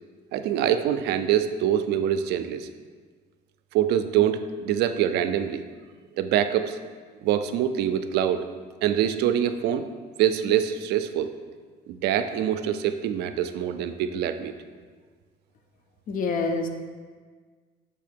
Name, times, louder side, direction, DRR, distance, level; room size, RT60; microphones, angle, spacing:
voice 1, 0.3-2.7 3.7-5.6 6.2-6.8 7.2-8.4 8.8-9.9 10.2-11.3 11.9-14.5, right 10 dB, 80° right, 10 dB, 0.4 m, -24 dB
voice 2, 16.1-16.7, left 3 dB, 55° left, 6 dB, 0.6 m, -26 dB
6.6 x 2.8 x 5.1 m, 1.5 s
cardioid pair, 110°, 17 cm